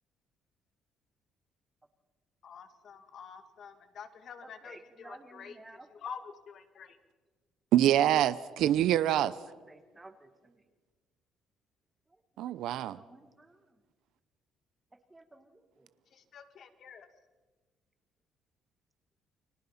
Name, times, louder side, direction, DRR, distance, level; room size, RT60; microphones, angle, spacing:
voice 1, 2.4-7.0 16.1-17.1, left 6 dB, 50° left, 9 dB, 1.9 m, -47 dB
voice 2, 4.4-5.9 9.4-10.6 12.4-13.7 15.1-15.9, right 2 dB, 15° right, 8 dB, 1.7 m, -54 dB
voice 3, 7.7-9.3 12.4-13.0, right 12 dB, 75° right, 15 dB, 0.6 m, -25 dB
30.0 x 22.0 x 5.8 m, 1.3 s
cardioid pair, 130°, 0 cm